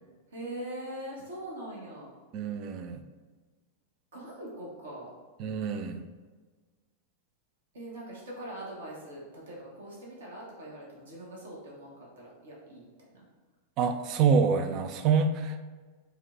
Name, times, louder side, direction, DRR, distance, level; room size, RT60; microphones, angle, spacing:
voice 1, 0.3-2.2 4.1-5.2 7.7-13.2, right 1 dB, 65° right, -3 dB, 1.1 m, -42 dB
voice 2, 2.3-3.0 5.4-6.0 13.8-15.6, right 5 dB, 40° right, 8 dB, 0.3 m, -26 dB
4.7 x 2.2 x 3.7 m, 1.4 s
figure-of-eight pair, 90°, 0 cm